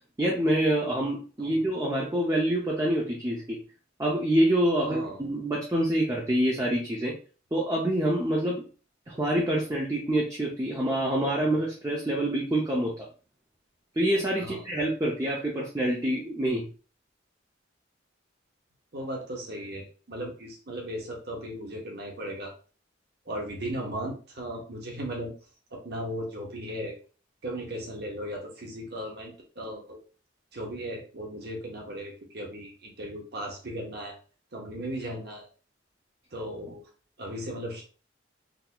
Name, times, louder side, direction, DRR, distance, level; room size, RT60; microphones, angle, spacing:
voice 1, 0.2-3.6 4.0-7.1 7.5-8.6 9.1-13.1 14.0-16.7, right 1 dB, 15° right, -3 dB, 0.5 m, -26 dB
voice 2, 4.8-5.2 14.4-14.6 18.9-22.5 23.3-25.3 25.7-27.0 27.4-30.0 30.5-34.1 34.5-35.5 36.3-36.8 37.2-37.8, equal, 55° right, 0 dB, 1.0 m, -36 dB
3.9 x 2.7 x 2.2 m, 0.37 s
head